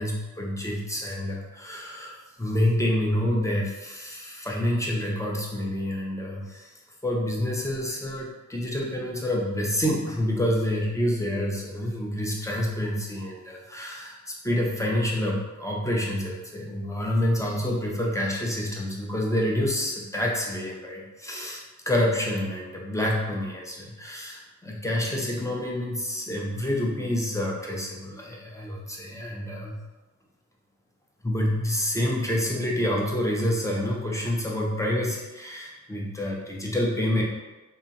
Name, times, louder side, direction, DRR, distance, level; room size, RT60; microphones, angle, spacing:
voice 1, 0.0-6.7 7.0-29.8 31.2-37.2, left 1 dB, 10° left, -2 dB, 0.5 m, -28 dB
2.8 x 2.5 x 2.6 m, 1.1 s
wide cardioid pair, 100°, 31 cm